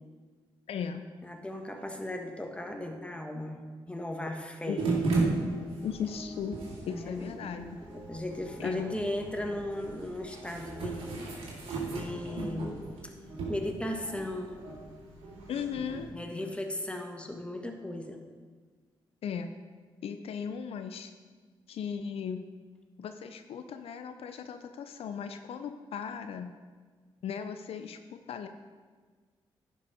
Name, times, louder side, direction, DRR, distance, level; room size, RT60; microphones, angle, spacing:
voice 1, 0.7-1.1 4.7-4.8 5.8-6.6 6.9-7.8 8.6-9.0 15.5-16.1 19.2-19.5 20.0-21.1 21.7-22.4 23.0-26.5 27.2-28.5, left 7 dB, 75° left, 8 dB, 0.5 m, -37 dB
voice 2, 1.2-3.6 3.9-4.9 6.9-7.4 7.9-11.4 11.8-12.7 13.0-13.1 13.5-14.5 16.1-18.2, left 1 dB, 10° left, 4 dB, 1.4 m, -36 dB
sound 1, 4.8-16.1, right 3 dB, 80° right, 2.2 m, -36 dB
10.5 x 5.4 x 5.0 m, 1.5 s
supercardioid pair, 50°, 10 cm